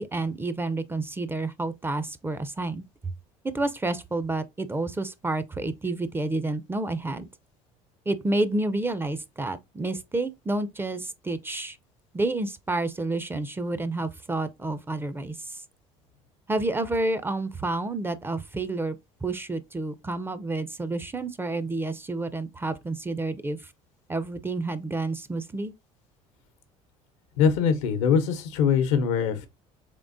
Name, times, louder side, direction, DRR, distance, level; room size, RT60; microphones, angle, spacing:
voice 1, 0.0-3.1 3.4-7.3 8.1-11.8 12.1-15.6 16.5-23.6 24.1-25.7, right 2 dB, 15° right, 0.5 m, -29 dB
voice 2, 27.4-29.5, left 7 dB, 85° left, 0.8 m, -22 dB
3.6 x 3.4 x 2.5 m
supercardioid pair, 80°, 16 cm